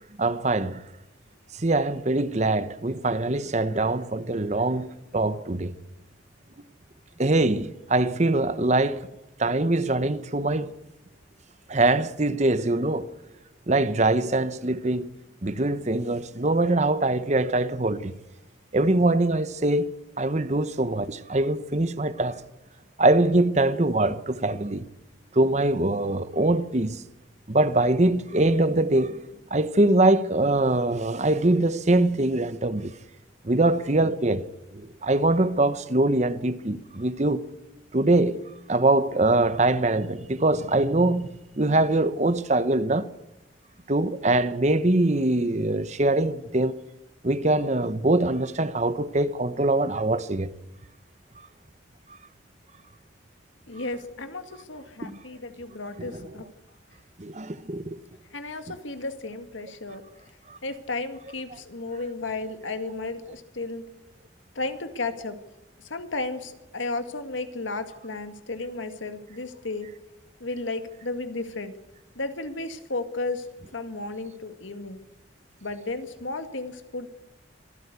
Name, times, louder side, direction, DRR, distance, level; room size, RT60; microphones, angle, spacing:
voice 1, 0.2-0.8 1.6-5.7 7.2-9.1 9.4-10.7 11.7-13.1 13.7-15.1 15.4-18.1 18.7-19.9 20.2-22.4 23.0-24.9 25.3-27.0 27.5-29.2 29.5-32.9 33.4-34.5 34.7-37.4 37.9-38.4 38.7-43.1 43.9-46.8 47.2-50.5 55.0-55.2 56.1-56.3 57.2-58.0 60.5-60.6, right 2 dB, 35° right, 0.9 m, -23 dB
voice 2, 53.7-56.5 58.3-60.0 60.6-63.9 64.6-65.4 65.8-69.9 70.4-71.8 72.2-75.0 75.6-77.1, left 3 dB, 85° left, 2.1 m, -33 dB
24.5 x 15.5 x 8.2 m
head